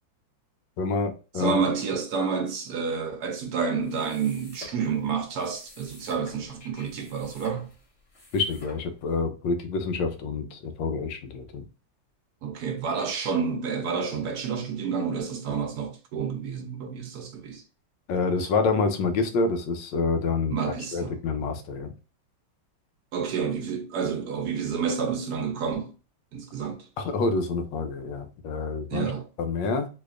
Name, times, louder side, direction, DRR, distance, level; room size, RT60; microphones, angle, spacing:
voice 1, 0.8-1.6 8.3-11.6 18.1-20.5 20.9-21.9 27.0-29.1 29.4-29.9, left 4 dB, 80° left, 1.3 m, -27 dB
voice 2, 1.4-7.7 12.4-17.6 20.5-21.1 21.4-21.6 23.1-25.9 26.3-26.9 28.9-29.2, right 6 dB, 65° right, 1.0 m, -29 dB
sound 1, 3.8-9.2, left 1 dB, 45° left, 1.7 m, -49 dB
4.0 x 2.8 x 2.4 m
omnidirectional pair, 2.0 m